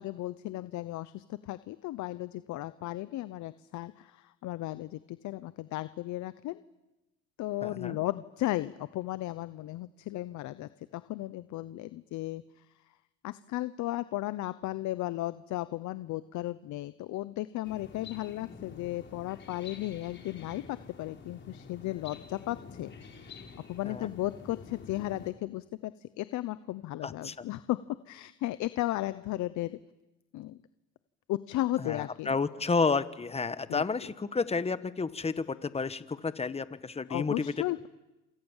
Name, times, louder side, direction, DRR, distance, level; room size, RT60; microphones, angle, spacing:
voice 1, 0.0-6.6 7.4-12.6 13.2-22.9 23.7-27.8 28.1-29.8 30.3-30.6 31.3-32.4 33.7-34.1 37.1-37.9, left 16 dB, 65° left, 14 dB, 0.9 m, -35 dB
voice 2, 7.6-8.0 23.9-24.1 27.0-27.3 31.8-37.5, left 4 dB, 20° left, 14 dB, 1.3 m, -31 dB
sound 1, 17.6-25.3, left 5 dB, 35° left, 4.7 m, -48 dB
28.0 x 27.5 x 7.4 m, 1.0 s
cardioid pair, 105°, 32 cm